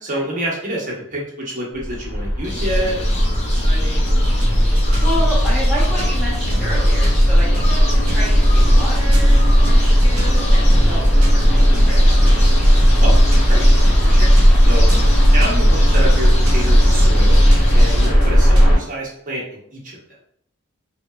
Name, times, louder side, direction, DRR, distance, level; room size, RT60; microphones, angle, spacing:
voice 1, 0.0-3.0 3.5-4.1 13.0-13.1 13.5-14.9 15.3-17.4 17.7-20.0, right 1 dB, 35° right, -3 dB, 0.6 m, -27 dB
sound 1, 1.8-18.8, equal, 85° left, 0.7 m, -14 dB
sound 2, 2.4-18.1, left 2 dB, 30° left, 0.4 m, -31 dB
sound 3, 4.0-18.7, right 1 dB, 65° right, 0.8 m, -35 dB
voice 2, 5.0-12.2, equal, ahead, -7 dB, 0.8 m, -30 dB
2.9 x 2.0 x 2.2 m, 0.73 s
head